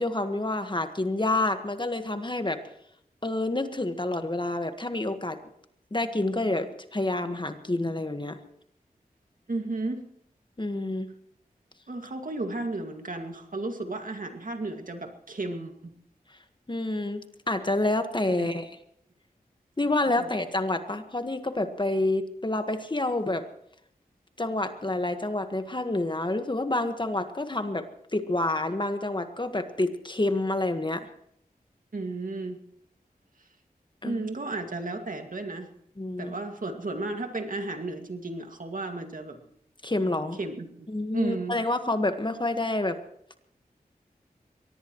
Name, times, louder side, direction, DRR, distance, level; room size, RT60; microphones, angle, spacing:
voice 1, 0.0-2.6 3.2-5.4 5.9-8.4 10.6-11.1 16.7-18.8 19.8-23.4 24.4-27.9 28.1-31.1 34.0-34.3 36.0-36.3 39.8-40.4 40.9-43.0, left 2 dB, 30° left, 8 dB, 1.6 m, -28 dB
voice 2, 9.5-10.0 11.9-15.9 18.3-18.5 20.2-20.3 31.9-32.6 34.0-35.7 36.2-39.4 40.4-41.6, right 2 dB, 60° right, 5 dB, 2.2 m, -33 dB
23.0 x 18.5 x 3.1 m, 0.72 s
wide cardioid pair, 55°, 16 cm